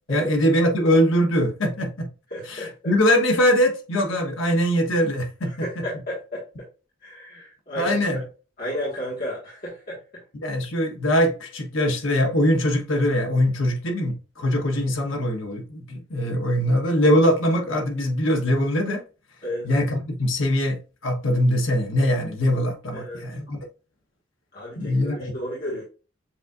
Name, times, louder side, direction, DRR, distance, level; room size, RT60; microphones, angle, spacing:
voice 1, 0.1-2.1 2.5-5.7 7.8-8.2 10.4-19.0 19.6-20.8 21.0-23.6 24.8-25.3, equal, 90° left, 1.1 m, -22 dB
voice 2, 2.3-2.7 5.4-6.4 7.0-8.2 8.6-10.0 19.4-19.7 22.9-23.2 24.5-25.9, equal, 50° left, 1.6 m, -32 dB
7.1 x 2.7 x 2.3 m
head